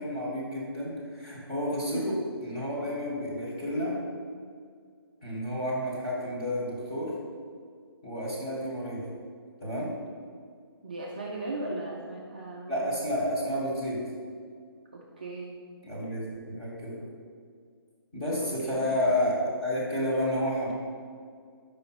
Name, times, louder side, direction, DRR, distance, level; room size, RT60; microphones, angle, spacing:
voice 1, 0.0-2.2 2.4-4.0 5.2-7.1 8.0-9.1 9.6-9.9 12.7-14.0 15.8-17.0 18.1-19.3 19.6-20.7, left 1 dB, 20° left, -8 dB, 1.4 m, -30 dB
voice 2, 10.8-12.9 14.9-15.6 18.4-19.0, right 2 dB, 20° right, -4 dB, 0.3 m, -38 dB
5.1 x 5.0 x 4.6 m, 2.1 s
hypercardioid pair, 170°, 13 cm